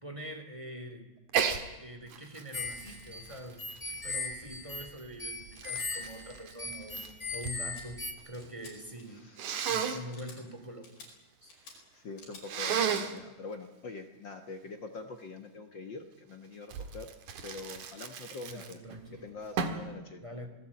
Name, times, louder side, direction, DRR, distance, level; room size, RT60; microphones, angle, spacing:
voice 1, 0.0-1.1 1.7-7.0 7.3-9.3 9.7-10.9 11.4-11.6 18.5-19.2 20.2-20.5, equal, 10° right, 5 dB, 2.4 m, -44 dB
Sneeze, 1.3-1.6 2.1-4.4 5.1-7.6 7.9-8.5 9.4-10.0 12.4-13.2 16.7-19.0 19.6-19.9, right 7 dB, 65° right, 2.9 m, -34 dB
sound 1, 2.5-8.1, left 3 dB, 15° left, 2.4 m, -39 dB
sound 2, 7.7-7.8 8.3-8.7 9.0-9.3 9.6-9.7 10.1-10.4 10.8-11.1 11.5-11.8 12.2-12.4 12.8-13.0, left 4 dB, 80° left, 6.9 m, -51 dB
voice 2, 9.1-9.4 10.1-10.5 11.9-17.1 17.4-18.8 19.1-20.2, left 3 dB, 50° left, 6 dB, 1.4 m, -44 dB
26.5 x 18.0 x 8.5 m, 1.0 s
omnidirectional pair, 4.0 m